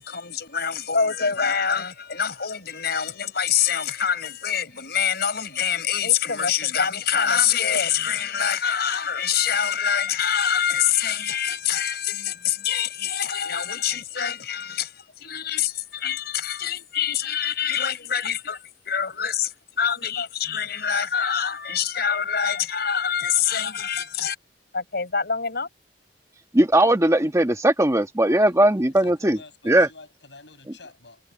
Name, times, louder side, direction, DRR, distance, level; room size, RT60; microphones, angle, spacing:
voice 1, 0.0-24.4 24.7-25.7, left 8 dB, 65° left, 5.6 m, -25 dB
voice 2, 26.5-29.4 29.6-29.9, right 1 dB, 15° right, 1.4 m, -19 dB
voice 3, 28.2-31.2, left 3 dB, 80° left, 7.9 m, -48 dB
head